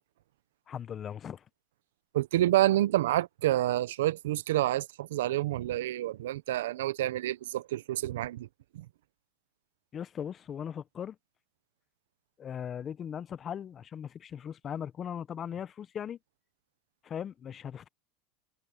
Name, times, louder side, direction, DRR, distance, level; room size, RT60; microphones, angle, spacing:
voice 1, 0.7-1.4 9.9-11.2 12.4-16.2 17.0-17.9, left 8 dB, 35° left, 1.1 m, -38 dB
voice 2, 2.1-8.5 8.7-8.9, right 14 dB, 80° right, 1.0 m, -28 dB
hypercardioid pair, 95°, 0 cm